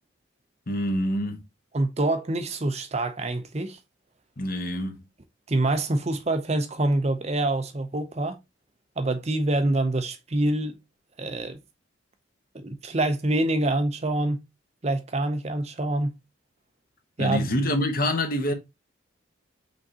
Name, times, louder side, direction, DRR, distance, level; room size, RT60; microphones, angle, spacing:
voice 1, 0.7-1.4 4.4-5.0 17.2-18.5, left 1 dB, 45° left, 1.0 m, -26 dB
voice 2, 1.7-3.8 5.5-8.4 9.0-10.8 11.2-11.6 12.5-14.4 14.8-16.1 17.2-17.5, right 2 dB, 35° right, 0.6 m, -26 dB
5.2 x 3.5 x 2.8 m
head